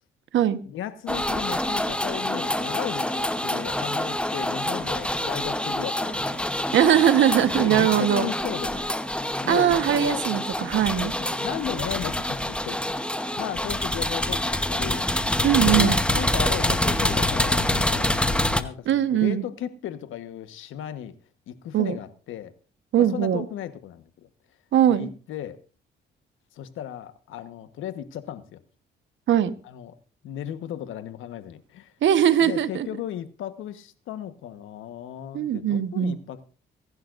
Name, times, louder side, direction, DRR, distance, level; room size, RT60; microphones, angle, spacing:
voice 1, 0.7-6.5 7.5-8.9 9.4-10.2 10.9-12.8 13.4-15.1 15.4-21.1 21.5-22.5 23.0-24.3 24.9-25.6 26.5-28.6 29.6-30.0 30.2-31.9 32.4-36.4, left 11 dB, 85° left, 11 dB, 1.3 m, -35 dB
sound 1, 1.1-18.6, left 1 dB, 5° left, 1.1 m, -26 dB
voice 2, 6.7-8.3 9.5-11.1 15.4-16.0 18.9-19.4 21.7-22.0 22.9-23.4 24.7-25.1 29.3-29.5 32.0-32.9 35.3-36.2, right 10 dB, 70° right, 12 dB, 1.3 m, -21 dB
24.0 x 11.0 x 2.6 m, 0.38 s
cardioid pair, 90°, 20 cm